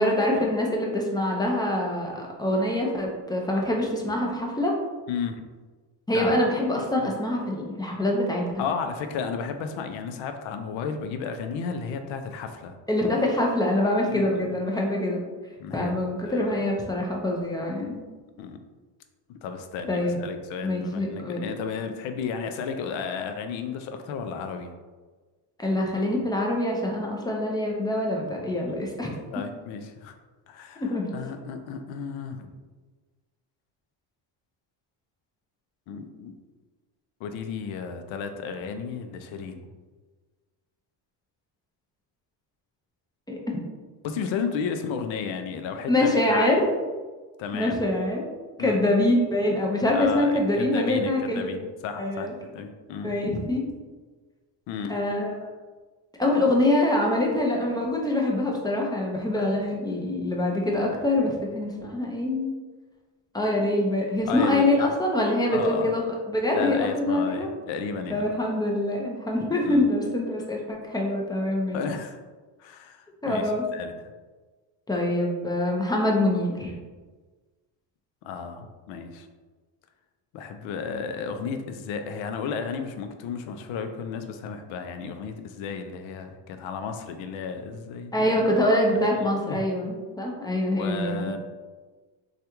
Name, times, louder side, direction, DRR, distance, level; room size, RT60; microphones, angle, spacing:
voice 1, 0.0-4.7 6.1-8.5 12.9-15.2 15.7-18.0 19.9-20.2 20.6-21.4 25.6-29.2 30.8-31.1 43.3-43.6 45.9-46.6 47.5-48.3 48.6-51.5 52.0-52.3 53.0-53.6 54.9-55.5 56.2-62.5 63.3-66.0 66.3-67.5 68.1-71.8 73.2-73.6 74.9-76.7 88.1-91.4, left 1 dB, 10° left, -1 dB, 0.4 m, -25 dB
voice 2, 5.1-5.4 6.1-6.4 7.0-7.1 8.6-12.8 14.1-14.5 15.6-16.5 18.4-18.6 19.3-24.7 29.3-30.1 30.5-32.5 35.9-36.3 37.2-39.7 44.0-46.6 47.4-47.8 48.6-48.8 49.9-53.1 54.7-54.9 59.4-59.5 64.3-64.9 65.5-65.9 66.5-68.3 69.7-69.9 71.7-72.2 72.6-73.9 78.2-79.3 80.3-88.4 89.2-89.7 90.6-91.4, left 6 dB, 65° left, 7 dB, 0.5 m, -33 dB
3.2 x 2.4 x 2.9 m, 1.3 s
cardioid pair, 100°, 49 cm